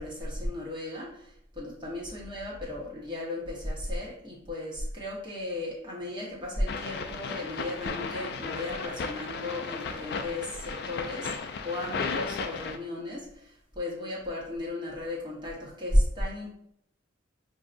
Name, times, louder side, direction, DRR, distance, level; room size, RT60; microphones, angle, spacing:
voice 1, 0.0-11.3 11.6-16.5, left 1 dB, 25° right, -5 dB, 1.0 m, -34 dB
sound 1, 6.7-12.8, left 4 dB, 55° left, 0.3 m, -35 dB
4.7 x 2.7 x 2.5 m, 0.71 s
head